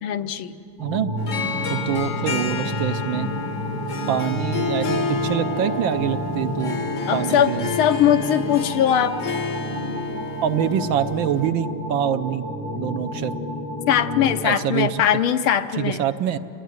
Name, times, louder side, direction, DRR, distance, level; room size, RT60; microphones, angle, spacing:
voice 1, 0.0-0.6 7.1-9.4 13.9-16.0, left 9 dB, 80° left, 10 dB, 1.7 m, -21 dB
voice 2, 0.8-1.1 1.7-3.3 4.1-6.8 7.1-7.7 10.4-12.5 12.7-13.3 14.4-15.0 15.8-16.4, right 9 dB, 70° right, 10 dB, 1.4 m, -25 dB
sound 1, 0.8-14.3, equal, 90° right, 6.9 m, -30 dB
Harp, 1.2-11.5, left 5 dB, 50° left, 1.0 m, -30 dB
28.0 x 18.5 x 9.4 m, 2.8 s
omnidirectional pair, 2.3 m